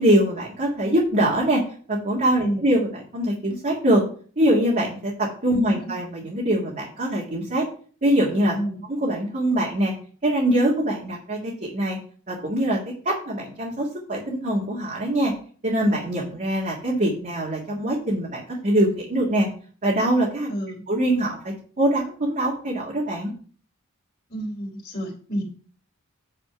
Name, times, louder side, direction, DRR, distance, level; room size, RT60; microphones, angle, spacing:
voice 1, 0.0-1.6 1.9-4.0 4.4-7.7 8.0-8.6 8.9-9.9 10.2-12.0 12.3-12.8 13.1-15.3 15.6-19.5 19.8-20.5 20.9-23.3, right 1 dB, 40° right, -4 dB, 2.0 m, -23 dB
voice 2, 5.5-5.9 8.5-8.8 20.5-20.9 24.3-25.4, right 1 dB, 35° left, -5 dB, 3.2 m, -29 dB
9.1 x 4.3 x 6.0 m, 0.43 s
head